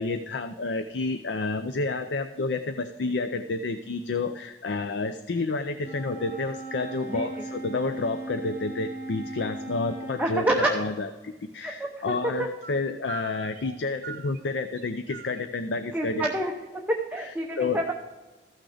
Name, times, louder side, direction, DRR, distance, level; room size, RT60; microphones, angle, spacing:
voice 1, 0.0-16.3 17.2-17.8, left 3 dB, 80° left, 9 dB, 0.5 m, -30 dB
Wind instrument woodwind instrument, 5.8-10.3, right 2 dB, 30° left, 3.5 m, -38 dB
voice 2, 10.2-10.8 11.6-12.5 15.9-17.9, right 1 dB, 10° right, 0 dB, 0.8 m, -28 dB
sound 1, 10.6-10.9 12.2-12.8 13.1-13.8 14.0-15.5, right 4 dB, 50° right, 0.8 m, -41 dB
14.5 x 6.2 x 5.0 m, 1.2 s
head